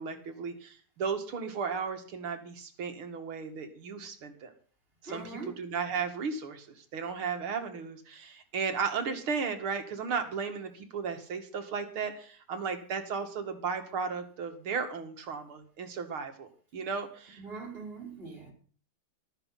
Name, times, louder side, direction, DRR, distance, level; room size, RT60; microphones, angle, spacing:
voice 1, 0.0-4.5 5.0-17.4, right 5 dB, 90° right, 2.9 m, -35 dB
voice 2, 5.1-5.6 17.4-18.5, right 3 dB, 25° right, 4.9 m, -42 dB
14.0 x 13.0 x 5.8 m
omnidirectional pair, 2.3 m